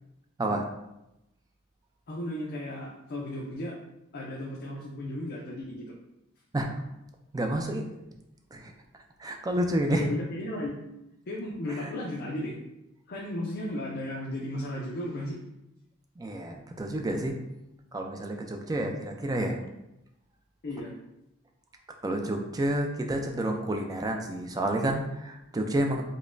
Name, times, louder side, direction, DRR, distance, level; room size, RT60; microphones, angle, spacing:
voice 1, 2.1-3.8 4.1-5.9 9.9-10.8 11.3-12.6 13.1-15.4 20.6-20.9, left 1 dB, 50° left, -3 dB, 0.5 m, -35 dB
voice 2, 7.3-7.9 8.5-8.7 9.2-10.1 11.7-11.9 16.2-17.4 17.9-19.6 22.0-26.1, right 1 dB, 20° right, 3 dB, 0.3 m, -29 dB
4.9 x 2.1 x 2.5 m, 0.88 s
head